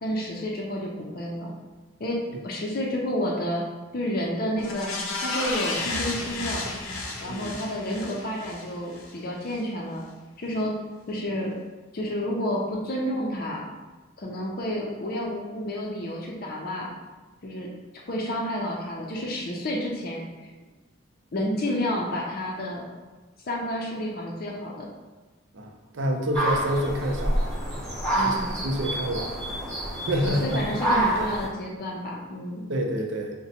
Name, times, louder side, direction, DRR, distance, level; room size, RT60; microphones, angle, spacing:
voice 1, 0.0-1.5 2.0-2.2 2.4-3.6 3.9-4.9 5.2-6.7 7.2-10.0 10.4-10.8 11.1-11.5 11.9-13.6 14.2-16.9 17.4-17.7 18.1-20.2 21.3-22.8 23.5-24.9 28.1-28.6 30.2-32.6, equal, 45° left, -2 dB, 0.5 m, -30 dB
sound 1, 4.6-9.1 9.5-9.6, left 2 dB, 90° left, 0.6 m, -32 dB
voice 2, 7.2-7.6 25.5-27.6 28.2-28.4 28.6-29.3 30.1-30.6 32.7-33.3, equal, 60° right, 2 dB, 0.5 m, -28 dB
sound 2, 26.3-31.5, right 1 dB, 5° left, 0.8 m, -27 dB
5.9 x 2.1 x 2.8 m, 1.2 s
head